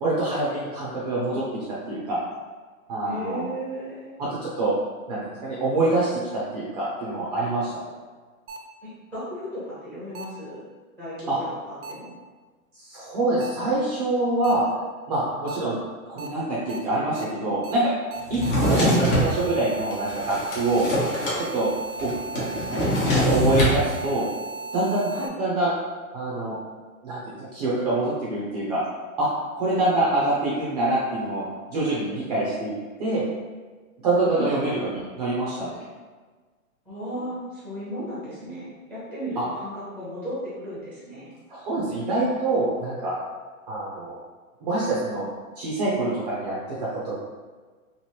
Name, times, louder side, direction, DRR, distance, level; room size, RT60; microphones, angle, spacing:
voice 1, 0.0-1.5 1.9-2.2 2.9-3.4 4.2-4.8 5.1-7.7 11.3-11.4 12.9-14.6 15.1-15.8 16.1-17.9 18.3-20.9 21.3-21.7 22.0-24.3 24.7-25.7 26.1-26.6 27.0-28.8 29.2-29.3 29.5-31.4 31.7-32.7 33.0-33.2 34.0-35.7 39.4-39.5 41.5-43.2 43.7-44.2 44.6-45.3 45.6-47.2, right 2 dB, 30° right, -6 dB, 0.5 m, -25 dB
voice 2, 3.0-4.2 8.8-10.6 11.0-12.1 18.4-18.7 25.1-25.3 34.3-34.5 36.8-41.3, equal, 5° left, -10 dB, 0.7 m, -35 dB
sound 1, 8.5-8.6 10.1-10.2 11.8-11.9 13.4-13.5 14.4-14.5 15.5-15.6 16.2-16.3 16.7-16.8 17.1-17.2 17.6-17.7 18.1-25.3, right 3 dB, 80° right, 0.7 m, -36 dB
Drawer open or close, 18.3-19.3 19.9-21.4 21.7-21.8 22.0-23.8, equal, 40° left, 1.0 m, -23 dB
3.1 x 2.6 x 2.8 m, 1.4 s
hypercardioid pair, 155°, 43 cm